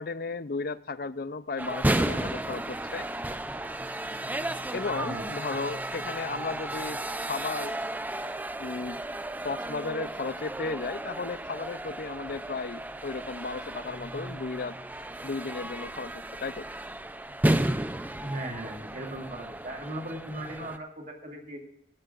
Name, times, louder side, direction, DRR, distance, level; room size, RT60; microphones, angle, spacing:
voice 1, 0.0-3.1 4.7-7.8 8.6-9.0 9.4-14.8 15.2-16.7, left 4 dB, 50° left, 15 dB, 0.5 m, -35 dB
sound 1, 1.6-20.8, right 1 dB, 10° right, 0.4 m, -33 dB
voice 2, 5.0-5.3 18.2-21.6, right 1 dB, 45° right, 1 dB, 2.6 m, -38 dB
17.0 x 13.0 x 2.5 m, 0.73 s
head